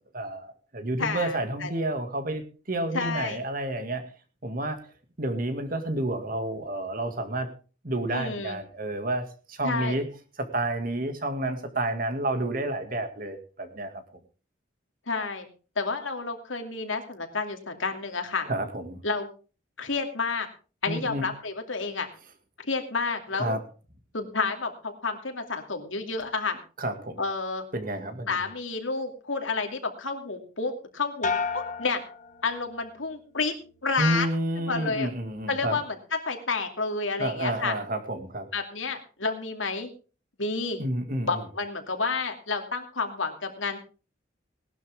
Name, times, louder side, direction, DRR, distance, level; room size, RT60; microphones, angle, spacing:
voice 1, 0.1-4.0 4.4-4.8 5.2-7.5 7.8-10.1 10.4-14.0 18.5-19.0 20.9-21.3 23.3-23.6 26.8-27.2 27.7-28.4 34.0-35.8 37.2-38.5 40.8-41.4, right 1 dB, 45° right, 8 dB, 2.2 m, -30 dB
voice 2, 1.0-1.7 2.9-3.4 8.1-8.6 9.6-10.0 15.1-15.5 15.8-18.5 19.0-19.3 19.8-20.5 20.8-22.1 22.6-23.6 24.1-26.6 27.2-27.6 28.3-32.0 32.4-33.5 33.8-34.3 34.7-35.1 35.5-35.9 36.3-37.7 38.5-39.9 40.4-40.8 41.3-43.8, left 4 dB, 90° left, 4 dB, 2.7 m, -30 dB
sound 1, 31.2-33.0 33.4-33.9, left 4 dB, 40° left, 1.7 m, -33 dB
19.0 x 12.0 x 3.6 m, 0.36 s
head